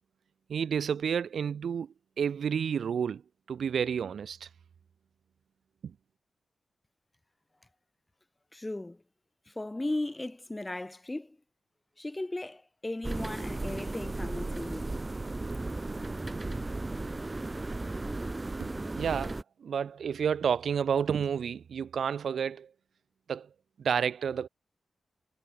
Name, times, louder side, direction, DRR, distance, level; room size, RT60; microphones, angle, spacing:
voice 1, 0.5-3.2 3.5-4.5 5.8-5.9 18.6-18.7 19.0-22.7 23.3-23.5 23.8-24.5, right 7 dB, 80° right, 2.0 m, -30 dB
voice 2, 8.5-9.0 9.5-11.4 12.0-15.0 16.0-16.1, left 2 dB, 20° left, 4.2 m, -36 dB
sound 1, 13.0-19.4, right 2 dB, 25° right, 0.5 m, -35 dB
cardioid pair, 80°, 0 cm